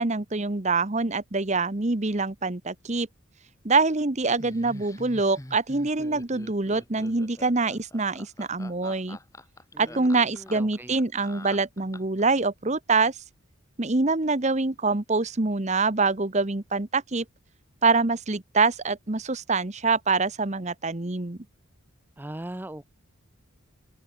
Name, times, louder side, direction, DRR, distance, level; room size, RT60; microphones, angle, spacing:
voice 1, 0.0-3.1 3.6-9.2 9.8-13.2 13.8-17.2 17.8-21.4, right 3 dB, 30° right, 1.0 m, -25 dB
Laughter, 4.4-12.2, left 1 dB, 15° left, 1.1 m, -45 dB
voice 2, 9.7-10.9 22.2-22.8, right 1 dB, 10° right, 0.5 m, -40 dB
open air
head